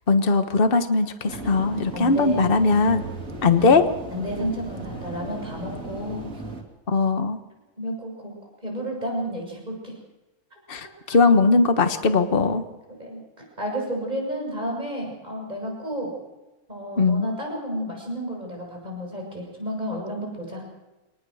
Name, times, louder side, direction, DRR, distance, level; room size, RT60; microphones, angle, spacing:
voice 1, 0.1-3.0 3.4-3.8 6.9-7.4 10.7-12.6 17.0-17.3, left 3 dB, 40° left, 8 dB, 1.5 m, -19 dB
sound 1, 1.3-6.6, right 3 dB, 55° right, 3.2 m, -36 dB
voice 2, 1.9-2.5 3.6-3.8 4.1-6.2 7.8-8.3 8.6-10.0 10.8-11.2 13.0-13.2 13.6-16.1 16.7-20.6, equal, 25° right, 0 dB, 7.2 m, -31 dB
25.5 x 19.0 x 6.5 m, 1.1 s
omnidirectional pair, 1.6 m